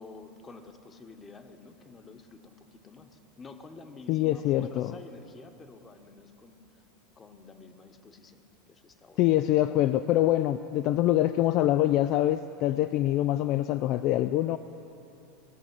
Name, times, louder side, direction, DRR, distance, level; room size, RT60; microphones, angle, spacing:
voice 1, 0.0-6.6 7.2-9.2, left 3 dB, 20° left, 6 dB, 1.2 m, -49 dB
voice 2, 4.1-4.9 9.2-14.6, left 14 dB, 45° left, 11 dB, 0.3 m, -25 dB
17.5 x 7.1 x 9.7 m, 2.9 s
figure-of-eight pair, 80°, 0 cm